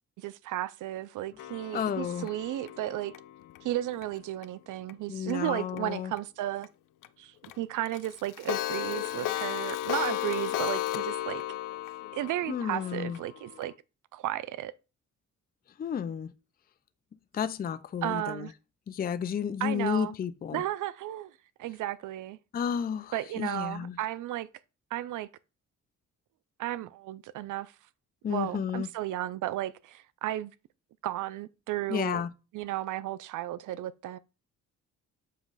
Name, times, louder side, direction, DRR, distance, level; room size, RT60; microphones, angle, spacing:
voice 1, 0.2-3.1 3.6-6.7 7.2-11.4 12.1-13.7 14.1-14.7 18.0-18.5 19.6-20.1 20.5-21.3 21.6-22.4 23.1-24.5 24.9-25.3 26.6-27.7 28.3-30.5 31.0-32.2 32.5-34.2, right 14 dB, 80° right, 0.5 m, -34 dB
Clock, 1.4-4.4 4.9-5.0 5.3-5.4 5.8-5.9 6.2-6.3 6.6-6.7 7.0-7.1 7.4-7.5 7.9-13.7, left 14 dB, 85° left, 0.5 m, -35 dB
voice 2, 1.7-2.3 5.1-6.1 12.5-13.2 15.8-16.3 17.3-18.5 18.9-20.6 22.5-24.0 28.2-28.9 31.9-32.3, left 8 dB, 30° left, 0.4 m, -32 dB
7.4 x 3.0 x 5.4 m
cardioid pair, 110°, 30 cm